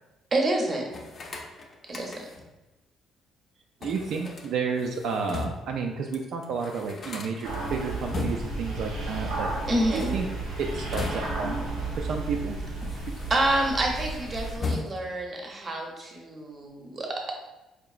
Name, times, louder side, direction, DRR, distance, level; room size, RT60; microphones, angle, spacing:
voice 1, 0.3-0.9 1.9-2.3 9.6-10.1 13.3-17.1, right 1 dB, 30° right, 1 dB, 0.7 m, -28 dB
sound 1, 0.9-2.5 3.8-5.8 6.1-6.2 6.4-8.7 9.7-11.6 12.3-13.6 13.9-15.3, left 3 dB, 35° left, 0.5 m, -37 dB
voice 2, 3.8-9.5 9.9-10.3 10.6-11.7 12.0-12.6, right 5 dB, 65° right, 3 dB, 0.3 m, -31 dB
sound 2, 7.4-14.6, right 2 dB, 85° right, 1.1 m, -33 dB
4.6 x 2.8 x 2.4 m, 1.0 s
cardioid pair, 140°, 0 cm